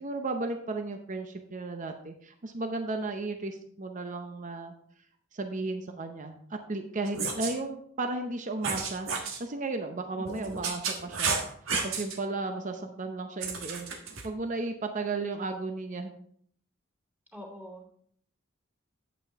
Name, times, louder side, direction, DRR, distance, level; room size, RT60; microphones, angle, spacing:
voice 1, 0.0-4.7 5.3-11.3 11.8-16.1, right 3 dB, 40° right, 5 dB, 0.7 m, -34 dB
sound 1, 7.1-7.5 8.6-9.4 10.2-12.2 13.4-14.3, right 5 dB, 80° right, 1.4 m, -32 dB
voice 2, 10.1-10.7 17.3-17.9, left 1 dB, 10° right, -3 dB, 2.8 m, -45 dB
9.2 x 8.4 x 3.5 m, 0.62 s
head